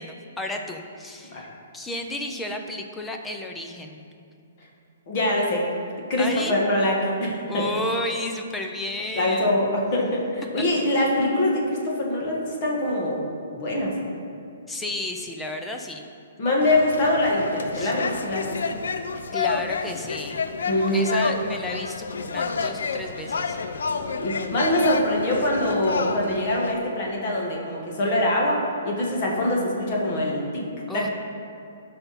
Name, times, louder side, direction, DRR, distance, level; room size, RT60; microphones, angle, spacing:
voice 1, 0.0-1.5 1.7-4.0 6.2-6.6 7.5-9.5 14.7-16.1 17.7-17.9 19.3-20.4 20.9-23.6 30.9-31.1, left 2 dB, 5° left, 3 dB, 0.4 m, -32 dB
voice 2, 5.1-5.7 6.1-7.7 9.1-13.3 13.5-13.9 16.4-18.6 20.7-21.0 23.9-30.6 30.9-31.1, left 1 dB, 30° left, -2 dB, 1.4 m, -24 dB
sound 1, 16.6-26.7, left 5 dB, 80° left, 0.5 m, -30 dB
12.5 x 5.8 x 4.2 m, 2.5 s
hypercardioid pair, 180°, 0 cm